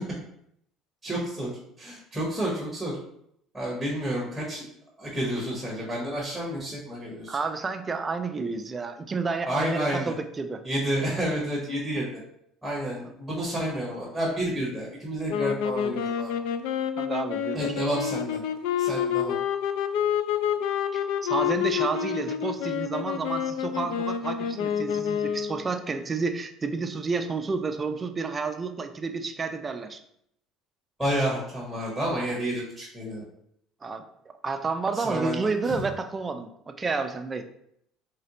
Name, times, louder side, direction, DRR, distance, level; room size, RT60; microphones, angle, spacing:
voice 1, 1.0-1.5 1.8-2.9 3.5-4.6 5.0-7.4 9.4-10.1 10.6-12.0 12.6-16.3 17.5-18.4 18.8-19.4 31.0-33.2 34.9-35.8, right 1 dB, 5° left, -5 dB, 1.0 m, -30 dB
voice 2, 7.3-10.6 13.0-13.1 17.0-17.8 20.9-30.0 33.8-37.4, right 4 dB, 20° right, 7 dB, 0.3 m, -30 dB
sound 1, 15.3-25.7, left 9 dB, 85° left, 0.3 m, -28 dB
4.2 x 3.3 x 2.8 m, 0.72 s
cardioid pair, 150°, 0 cm